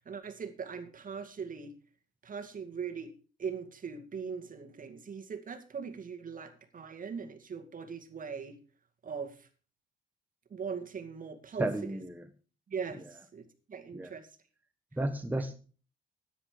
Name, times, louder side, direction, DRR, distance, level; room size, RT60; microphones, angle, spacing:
voice 1, 0.0-1.7 2.2-3.1 3.4-8.6 9.0-9.5 10.5-12.0 12.7-13.4 13.7-14.3, right 6 dB, 45° right, 6 dB, 2.2 m, -40 dB
voice 2, 11.6-12.2 13.9-14.1 15.0-15.6, right 1 dB, 10° right, 6 dB, 1.4 m, -32 dB
13.0 x 10.5 x 5.0 m, 0.38 s
cardioid pair, 90°, 20 cm